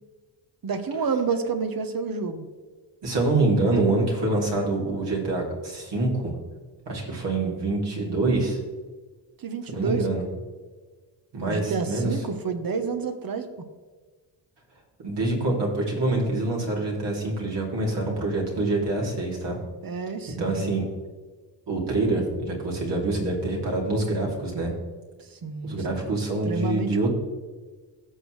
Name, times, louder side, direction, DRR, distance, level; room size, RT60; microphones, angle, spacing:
voice 1, 0.6-2.5 9.4-10.1 11.4-13.7 19.8-20.7 25.2-25.8 26.4-27.1, right 4 dB, 50° right, 8 dB, 1.2 m, -29 dB
voice 2, 3.0-6.3 6.8-8.6 9.7-10.2 11.3-12.2 15.0-19.6 20.3-20.8 21.7-24.7 25.6-27.1, right 2 dB, 65° right, -2 dB, 3.2 m, -25 dB
16.0 x 6.5 x 3.3 m, 1.4 s
cardioid pair, 85°, 45 cm